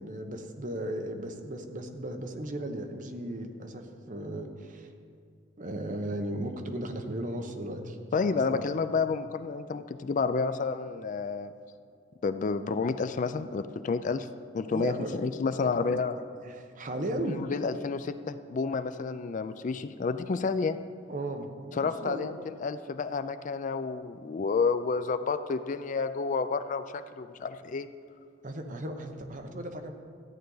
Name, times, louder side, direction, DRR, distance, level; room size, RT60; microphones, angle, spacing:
voice 1, 0.0-4.9 5.6-8.8 14.7-15.1 15.6-15.9 16.4-17.4 21.1-22.3 28.4-29.9, right 1 dB, 40° right, 5 dB, 0.9 m, -36 dB
voice 2, 8.1-11.5 12.2-14.3 14.5-16.2 17.2-20.8 21.7-27.9, left 4 dB, 40° left, 11 dB, 0.3 m, -30 dB
14.0 x 9.6 x 3.9 m, 2.5 s
head